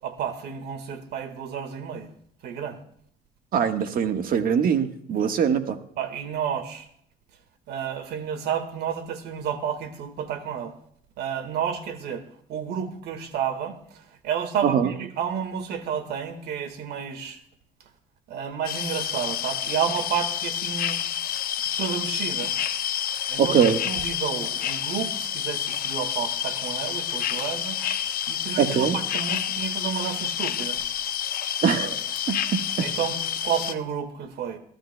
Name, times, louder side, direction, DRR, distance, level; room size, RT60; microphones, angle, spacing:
voice 1, 0.0-2.1 2.4-2.8 5.2-5.4 6.0-6.9 7.7-10.8 11.2-17.4 18.3-21.0 21.8-22.5 23.3-30.8 32.8-34.6, right 8 dB, 75° right, 1.8 m, -31 dB
voice 2, 3.5-5.8 14.6-14.9 23.4-23.8 28.6-29.0 31.6-32.0 32.3-32.9, right 7 dB, 60° right, 1.5 m, -22 dB
sound 1, 18.7-33.7, left 10 dB, 60° left, 0.8 m, -29 dB
25.0 x 12.5 x 2.3 m
cardioid pair, 110°, 17 cm